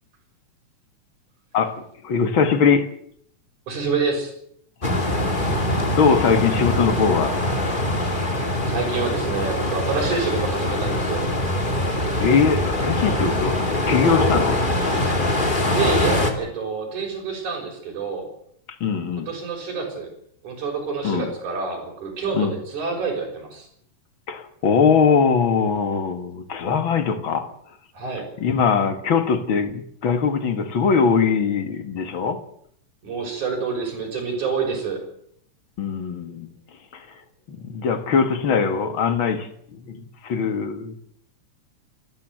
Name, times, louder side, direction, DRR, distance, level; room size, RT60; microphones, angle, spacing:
voice 1, 1.5-2.9 5.9-7.3 12.2-13.6 13.9-14.6 18.8-19.3 21.0-21.3 22.3-22.6 24.3-27.5 28.4-32.4 35.8-36.5 36.9-37.1 37.5-39.5 39.9-41.0, left 6 dB, 45° left, 9 dB, 2.3 m, -21 dB
voice 2, 3.7-4.3 8.7-11.3 15.7-18.3 19.3-20.1 20.4-23.7 27.9-28.3 33.0-35.0, right 5 dB, 70° right, 1 dB, 7.5 m, -27 dB
sound 1, 4.8-16.3, left 1 dB, 15° left, 2.6 m, -23 dB
28.0 x 14.0 x 7.9 m, 0.67 s
omnidirectional pair, 3.6 m